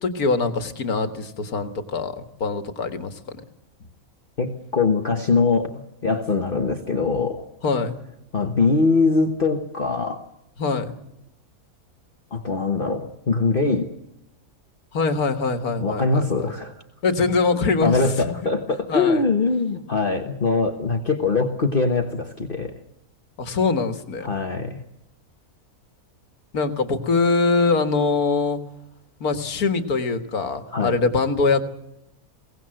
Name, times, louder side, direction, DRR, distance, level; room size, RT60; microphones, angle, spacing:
voice 1, 0.0-3.2 7.6-8.0 10.6-11.0 14.9-16.5 17.0-18.5 18.9-19.2 23.4-24.3 26.5-28.6 29.2-31.6, left 4 dB, 85° left, 9 dB, 2.0 m, -23 dB
voice 2, 4.4-7.5 8.3-10.2 12.3-13.9 15.8-16.7 17.8-22.7 24.2-24.8 30.7-31.0, left 4 dB, 40° left, 5 dB, 1.4 m, -22 dB
22.5 x 18.0 x 7.7 m, 0.86 s
omnidirectional pair, 1.5 m